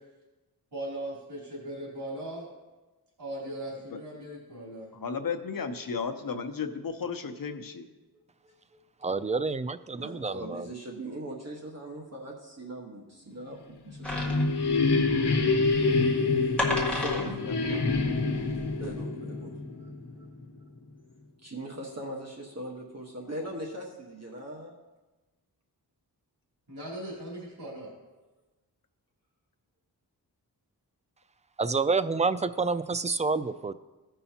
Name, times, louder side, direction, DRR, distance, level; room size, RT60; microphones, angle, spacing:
voice 1, 0.7-2.5 3.2-4.9 26.7-27.9, right 1 dB, 80° right, -5 dB, 3.1 m, -38 dB
voice 2, 4.9-7.9 16.3-18.1, left 5 dB, 60° left, 7 dB, 0.9 m, -35 dB
voice 3, 8.4-8.8 9.9-13.6 13.8-14.5 16.0-16.5 16.9-17.5 18.8-19.5 19.8-19.9 20.2-20.3 21.4-24.7, right 1 dB, 40° right, -1 dB, 1.4 m, -40 dB
voice 4, 9.0-10.7 31.6-33.7, right 4 dB, 20° right, 12 dB, 0.3 m, -28 dB
sound 1, 13.7-20.4, left 3 dB, 85° left, 1.0 m, -27 dB
sound 2, 14.0-19.0, left 1 dB, 5° left, 1.6 m, -34 dB
16.5 x 5.5 x 2.9 m, 1.2 s
wide cardioid pair, 80°, 39 cm